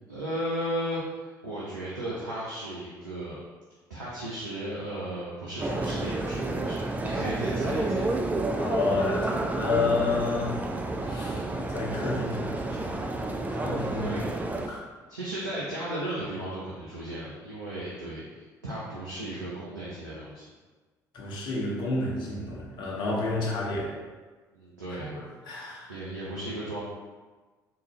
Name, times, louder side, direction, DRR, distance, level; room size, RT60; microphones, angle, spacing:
voice 1, 0.1-3.4 3.9-8.0 13.9-14.4 15.1-20.4 24.5-25.1 25.9-26.8, right 1 dB, 85° right, -7 dB, 0.5 m, -35 dB
sound 1, 5.6-14.7, right 2 dB, 15° right, 0.4 m, -30 dB
voice 2, 8.5-10.6 11.0-13.0 13.5-14.1 14.7-14.8 21.1-23.9 25.0-25.9, left 3 dB, 55° left, -3 dB, 0.9 m, -30 dB
3.7 x 2.5 x 3.1 m, 1.3 s
figure-of-eight pair, 50°, 10 cm